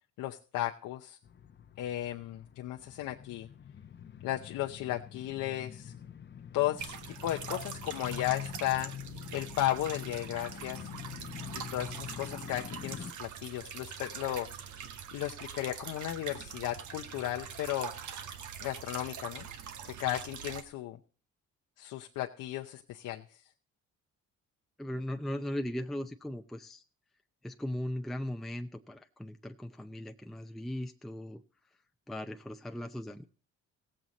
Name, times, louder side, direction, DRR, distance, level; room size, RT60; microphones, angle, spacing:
voice 1, 0.2-1.2 1.8-3.5 4.2-5.9 6.5-8.9 9.3-10.9 11.5-14.5 15.1-17.9 18.6-19.5 19.8-21.0 21.8-23.4, left 14 dB, 85° left, 2 dB, 0.7 m, -35 dB
sound 1, 1.2-13.1, left 9 dB, 35° left, 0.7 m, -45 dB
Water in drain, 6.8-20.6, right 7 dB, 75° right, 1.2 m, -43 dB
voice 2, 24.8-26.8 27.4-31.4 32.1-33.3, left 1 dB, ahead, 5 dB, 0.6 m, -38 dB
16.5 x 7.7 x 4.1 m, 0.40 s
cardioid pair, 90°, 30 cm